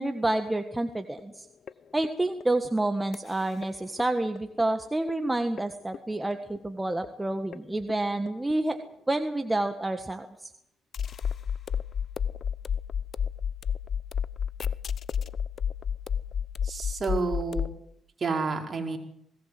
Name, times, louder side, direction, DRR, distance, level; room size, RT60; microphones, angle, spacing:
voice 1, 0.0-1.5 1.9-8.8 9.1-10.5, right 2 dB, 15° right, 7 dB, 1.6 m, -29 dB
sound 1, 1.2-1.3 1.7-1.8 2.0-2.7 3.1-3.2 3.6-3.7 4.0-4.6 5.1-5.2 5.6-5.7 5.9-6.6 7.0-7.1 7.5-7.6 7.9-8.5 10.9-17.8, left 7 dB, 55° left, 0.8 m, -31 dB
voice 2, 16.6-17.7 18.2-19.0, right 4 dB, 40° right, 3 dB, 4.8 m, -29 dB
21.0 x 18.0 x 7.8 m, 0.78 s
cardioid pair, 90°, 0 cm